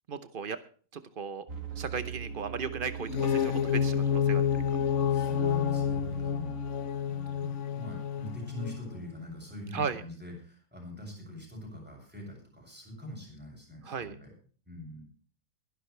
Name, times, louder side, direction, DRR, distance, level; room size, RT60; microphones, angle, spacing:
voice 1, 0.1-0.6 1.2-1.4 1.8-4.5 9.7-10.0 13.8-14.1, right 6 dB, 85° right, 11 dB, 0.4 m, -35 dB
sound 1, 1.5-7.2, right 7 dB, 40° right, 2.2 m, -41 dB
sound 2, 3.0-8.9, left 8 dB, 45° left, 1.0 m, -29 dB
voice 2, 5.1-6.5 7.1-14.3 14.7-15.0, left 1 dB, 5° right, -1 dB, 7.3 m, -43 dB
21.5 x 11.5 x 3.3 m, 0.41 s
omnidirectional pair, 2.3 m